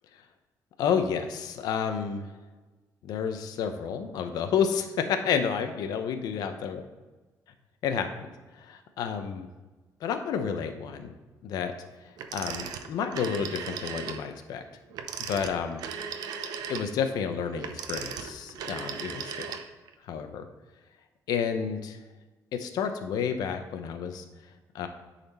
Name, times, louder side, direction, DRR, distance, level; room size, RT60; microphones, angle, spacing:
voice 1, 0.8-2.3 3.0-6.8 7.8-8.3 8.6-9.5 10.0-11.1 11.4-11.7 12.0-14.6 15.3-15.8 16.7-19.6 20.0-20.4 21.3-22.0 22.5-24.2 24.7-24.9, left 7 dB, 80° left, 7 dB, 0.8 m, -30 dB
Telephone, 12.2-14.3 14.9-19.9, right 7 dB, 80° right, 0.7 m, -37 dB
10.0 x 4.2 x 4.2 m, 1.2 s
cardioid pair, 160°, 7 cm